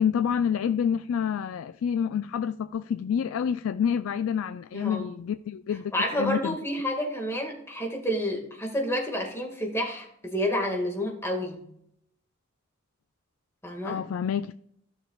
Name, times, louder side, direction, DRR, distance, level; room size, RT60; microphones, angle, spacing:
voice 1, 0.0-6.6 13.8-14.5, left 8 dB, 80° left, 0.3 m, -28 dB
voice 2, 4.7-5.1 5.9-11.6 13.6-14.0, equal, 10° left, 1.8 m, -29 dB
15.5 x 6.3 x 2.3 m
head